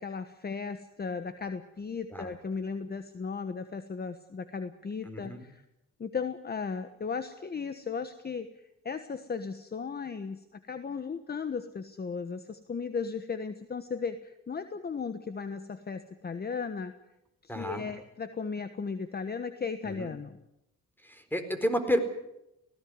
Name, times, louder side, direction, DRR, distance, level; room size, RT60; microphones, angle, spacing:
voice 1, 0.0-5.6 6.0-16.9 17.4-20.4, left 5 dB, 30° left, 10 dB, 1.3 m, -36 dB
voice 2, 5.0-5.4 17.5-17.8 19.8-20.1 21.0-22.0, equal, 5° left, 9 dB, 4.2 m, -31 dB
19.0 x 17.0 x 9.7 m, 0.88 s
cardioid pair, 90°, 30 cm